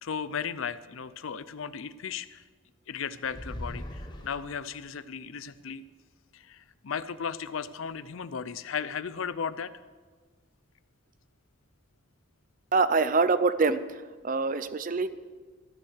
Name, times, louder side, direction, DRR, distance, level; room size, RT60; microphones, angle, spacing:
voice 1, 0.0-2.4 2.9-5.8 6.3-9.7, left 6 dB, 80° left, 15 dB, 0.5 m, -35 dB
sound 1, 3.2-4.9, equal, 20° left, 1.1 m, -40 dB
voice 2, 12.7-13.8 14.2-15.1, right 4 dB, 40° right, 13 dB, 0.5 m, -24 dB
13.0 x 8.6 x 6.5 m, 1.5 s
head